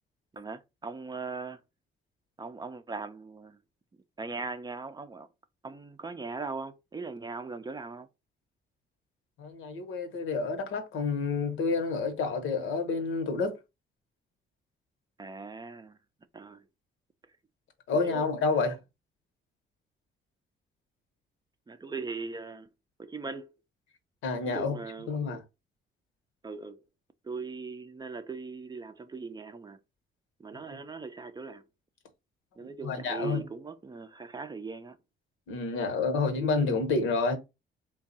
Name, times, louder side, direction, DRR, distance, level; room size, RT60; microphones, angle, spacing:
voice 1, 0.3-1.6 2.4-3.6 4.2-5.3 5.6-8.1 15.2-16.0 16.3-16.6 17.9-18.3 21.7-22.7 23.0-23.6 24.5-25.2 26.4-26.8 27.2-29.8 30.4-31.6 32.6-35.0, right 4 dB, 20° right, 0.4 m, -39 dB
voice 2, 9.4-13.5 17.9-18.8 24.2-24.8 25.1-25.4 30.7-30.8 32.8-33.4 35.5-37.4, left 4 dB, 85° left, 1.0 m, -29 dB
3.5 x 2.3 x 3.9 m
cardioid pair, 90°, 20 cm